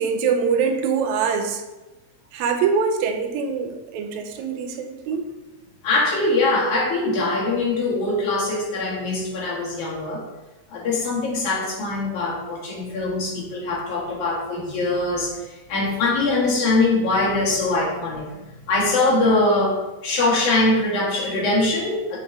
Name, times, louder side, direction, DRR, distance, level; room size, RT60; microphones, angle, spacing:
voice 1, 0.0-1.6 2.3-5.3, right 6 dB, 85° right, 6 dB, 1.9 m, -23 dB
voice 2, 5.8-10.2 10.7-18.3 18.7-19.7 20.0-22.2, left 2 dB, 85° left, -5 dB, 3.2 m, -22 dB
8.0 x 3.9 x 3.4 m, 1.1 s
omnidirectional pair, 3.3 m